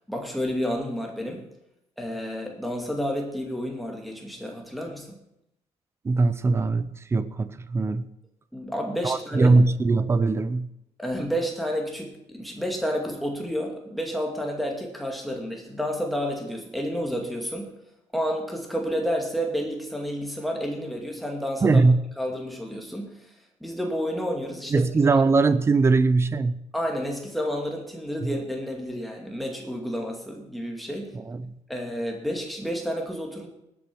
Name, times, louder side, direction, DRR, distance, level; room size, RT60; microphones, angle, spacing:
voice 1, 0.1-1.5 2.0-5.2 8.5-9.6 11.0-17.8 18.1-21.8 22.2-23.3 23.6-24.9 26.7-31.2 31.7-33.5, equal, ahead, 1 dB, 2.3 m, -30 dB
voice 2, 6.0-8.1 9.0-10.7 21.6-22.0 24.7-26.6 28.2-28.3 31.1-31.5, right 3 dB, 20° right, 14 dB, 0.6 m, -21 dB
19.0 x 8.6 x 6.2 m, 0.83 s
cardioid pair, 175°, 12 cm